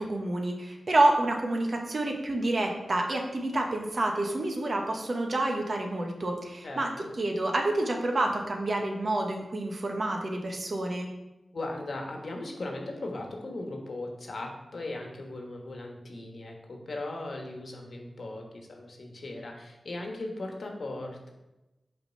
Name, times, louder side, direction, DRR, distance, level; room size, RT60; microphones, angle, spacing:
voice 1, 0.0-6.9 7.2-11.1, right 2 dB, 60° right, 2 dB, 1.1 m, -28 dB
voice 2, 6.6-7.1 11.5-21.3, left 2 dB, 70° left, 1 dB, 1.2 m, -38 dB
5.8 x 3.5 x 5.6 m, 0.98 s
cardioid pair, 45°, 0 cm